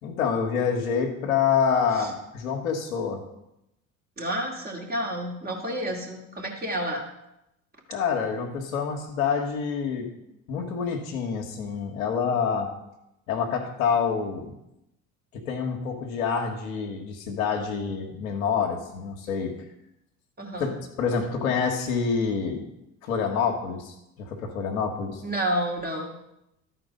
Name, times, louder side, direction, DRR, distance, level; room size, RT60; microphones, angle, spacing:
voice 1, 0.0-3.2 7.9-10.1 10.5-12.7 13.3-14.5 15.3-19.6 20.6-20.7 21.0-22.6 23.0-25.2, left 6 dB, 70° left, 2 dB, 1.5 m, -27 dB
voice 2, 4.2-7.1 20.4-20.7 25.2-26.1, right 1 dB, 20° right, 1 dB, 2.3 m, -30 dB
12.5 x 4.5 x 5.2 m, 0.86 s
figure-of-eight pair, 65°, 43 cm